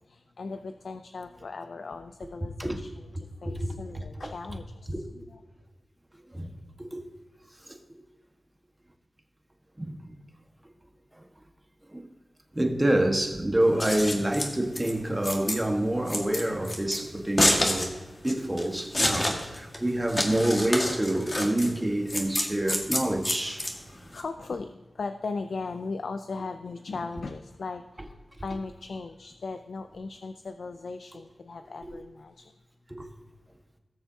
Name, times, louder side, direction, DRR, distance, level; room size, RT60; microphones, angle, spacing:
voice 1, 0.0-2.9 3.2-5.4 22.3-22.5 24.1-32.5, left 4 dB, 80° left, 0.4 m, -38 dB
voice 2, 3.4-4.0 4.9-5.0 6.3-6.5 6.8-7.0 7.6-7.8 9.8-10.2 11.2-11.3 11.9-12.1 12.5-18.0 18.2-23.7 31.8-32.0 32.9-33.1, right 1 dB, 20° right, 1.5 m, -27 dB
Scissors, 13.6-24.2, left 1 dB, 35° left, 1.8 m, -29 dB
18.0 x 6.9 x 2.8 m
cardioid pair, 45°, 0 cm